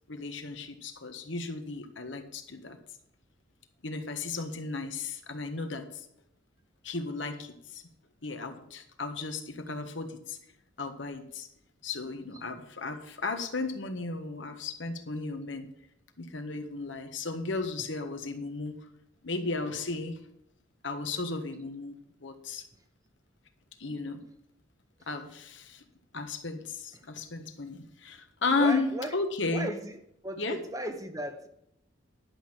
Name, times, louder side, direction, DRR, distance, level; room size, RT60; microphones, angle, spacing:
voice 1, 0.1-2.8 3.8-6.0 6.8-7.8 8.2-10.4 10.8-11.5 11.8-15.7 16.2-18.7 19.2-20.2 20.8-22.7 23.8-24.2 25.1-25.8 26.1-29.7 30.4-30.6, left 3 dB, 70° left, 1.5 m, -34 dB
voice 2, 28.6-29.1 29.5-31.5, right 1 dB, 15° right, 1.0 m, -36 dB
11.0 x 6.2 x 7.4 m
head